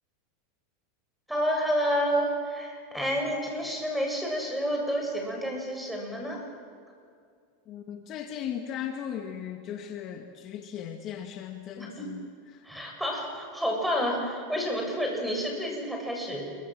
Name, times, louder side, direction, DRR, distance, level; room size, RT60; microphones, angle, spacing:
voice 1, 1.3-6.4 11.8-12.1 12.6-16.5, equal, ahead, 1 dB, 7.7 m, -29 dB
voice 2, 7.7-12.7, left 9 dB, 40° left, 5 dB, 2.1 m, -37 dB
28.0 x 24.0 x 7.9 m, 2.3 s
supercardioid pair, 125°, 0 cm